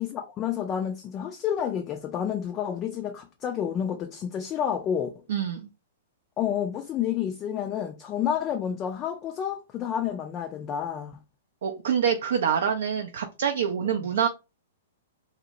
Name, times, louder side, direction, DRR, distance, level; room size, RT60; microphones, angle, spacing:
voice 1, 0.0-5.1 6.4-11.2 13.8-13.9, left 9 dB, 25° left, 0.3 m, -30 dB
voice 2, 5.3-5.6 11.6-14.3, right 7 dB, 55° right, 0.3 m, -26 dB
2.8 x 2.1 x 2.6 m
figure-of-eight pair, 105°, 0 cm